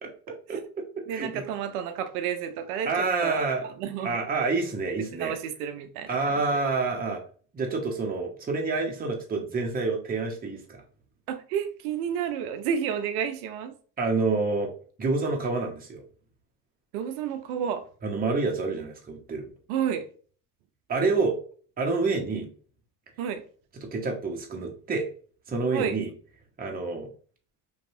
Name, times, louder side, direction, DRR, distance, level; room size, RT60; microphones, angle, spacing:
voice 1, 0.3-0.6 1.1-3.4 3.8-4.2 5.0-6.6 11.3-13.7 16.9-17.8 19.7-20.1 23.2-23.4 25.7-26.0, right 8 dB, 75° right, 0.5 m, -31 dB
voice 2, 1.1-1.4 2.9-3.7 4.0-5.3 6.1-7.2 7.5-10.8 14.0-14.7 15.0-16.0 18.0-19.5 20.9-21.4 21.8-22.5 23.9-25.1 25.5-26.1 26.6-27.1, right 3 dB, 20° right, 0.7 m, -28 dB
2.7 x 2.3 x 2.6 m
hypercardioid pair, 65°, 46 cm